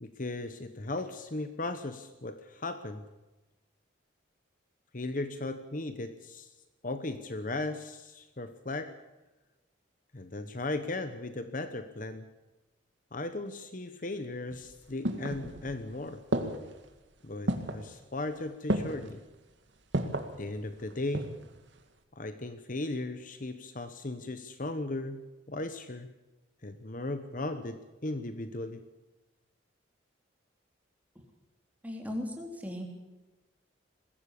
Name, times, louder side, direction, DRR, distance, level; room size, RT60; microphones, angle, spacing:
voice 1, 0.0-3.1 4.9-6.5 6.8-9.0 10.1-12.3 13.1-16.2 17.2-19.2 20.4-21.3 22.1-26.1 26.6-28.8, left 2 dB, 45° left, 10 dB, 1.0 m, -37 dB
sound 1, 14.5-15.8 16.3-16.8 17.5-17.9 18.7-19.1 19.9-20.3 20.9-21.5 21.8-21.9, right 1 dB, 70° right, 2.0 m, -32 dB
voice 2, 31.8-32.8, left 1 dB, 10° right, 1 dB, 3.6 m, -37 dB
21.5 x 16.0 x 8.5 m, 1.1 s
head